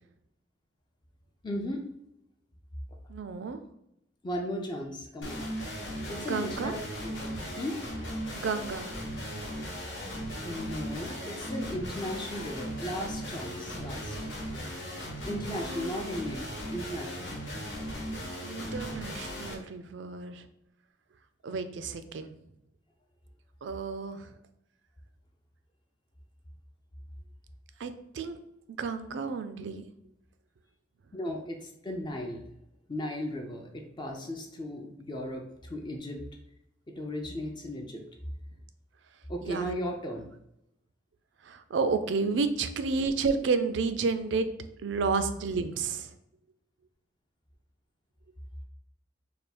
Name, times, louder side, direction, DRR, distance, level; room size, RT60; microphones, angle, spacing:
voice 1, 1.4-1.9 4.2-5.4 6.1-6.8 7.0-7.8 10.4-14.2 15.3-17.3 31.1-32.4 32.9-36.2 36.9-38.0 39.3-40.3, equal, 25° left, 2 dB, 0.4 m, -36 dB
voice 2, 3.1-3.6 6.2-6.7 8.3-8.9 15.6-15.9 18.4-20.5 21.4-22.3 23.6-24.3 27.8-28.4 28.8-29.8 39.4-39.7 41.4-44.5 44.8-46.1, right 4 dB, 70° right, 10 dB, 0.4 m, -31 dB
sound 1, 5.2-19.5, equal, 80° left, 1.0 m, -37 dB
3.4 x 2.3 x 4.1 m, 0.79 s
head